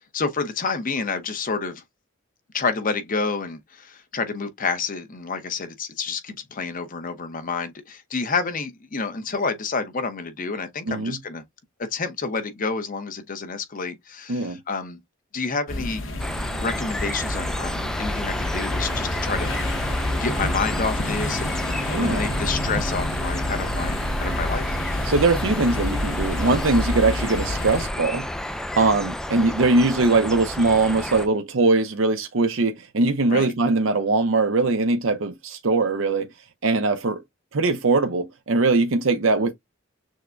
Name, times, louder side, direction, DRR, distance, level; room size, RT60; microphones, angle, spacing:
voice 1, 0.0-1.8 2.5-11.4 11.8-15.0 15.3-16.1 16.6-19.5 20.1-24.7 33.3-33.5, left 4 dB, 45° left, 0.8 m, -29 dB
voice 2, 10.9-11.2 14.3-14.6 21.9-22.3 25.1-28.3 28.8-36.3 36.6-37.2 37.5-39.5, right 3 dB, 80° right, 0.7 m, -21 dB
sound 1, 15.7-27.9, left 1 dB, 80° left, 1.1 m, -29 dB
sound 2, 16.2-31.3, left 1 dB, 5° left, 0.3 m, -30 dB
6.4 x 2.2 x 2.5 m
head